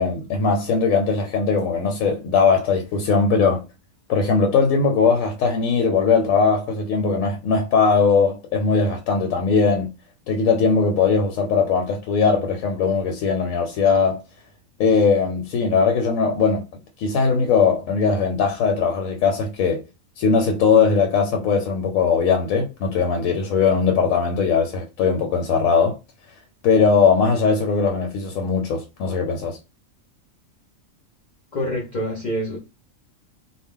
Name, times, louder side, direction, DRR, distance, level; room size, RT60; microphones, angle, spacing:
voice 1, 0.0-3.6 4.1-9.9 10.3-14.2 14.8-16.6 17.0-19.8 20.2-26.0 26.6-29.6, left 5 dB, 80° left, 1.0 m, -19 dB
voice 2, 31.5-32.6, equal, 55° left, 0.5 m, -26 dB
2.2 x 2.1 x 3.5 m
omnidirectional pair, 1.4 m